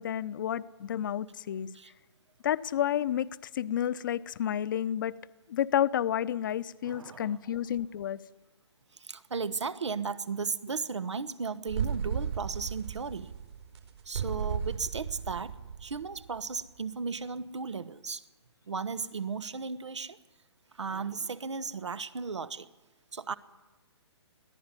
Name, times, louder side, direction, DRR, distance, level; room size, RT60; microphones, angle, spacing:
voice 1, 0.0-1.7 2.4-5.2 5.5-8.2, left 10 dB, 45° left, 16 dB, 0.8 m, -30 dB
voice 2, 6.8-7.4 8.9-13.3 14.1-18.2 18.7-20.2 20.7-22.7 23.1-23.4, right 5 dB, 85° right, 16 dB, 1.2 m, -35 dB
sound 1, 11.7-16.5, right 7 dB, 65° right, 4.6 m, -35 dB
21.5 x 14.5 x 9.8 m, 1.1 s
hypercardioid pair, 150°, 15 cm